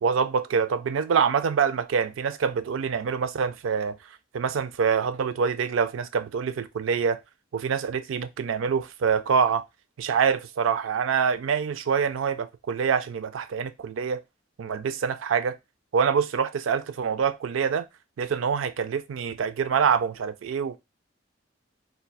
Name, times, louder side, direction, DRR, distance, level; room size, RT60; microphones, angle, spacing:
voice 1, 0.0-4.0 4.3-7.2 7.5-9.7 10.0-14.2 14.6-15.6 15.9-17.9 18.2-20.8, right 6 dB, 90° right, 0.4 m, -25 dB
4.0 x 2.2 x 2.2 m
head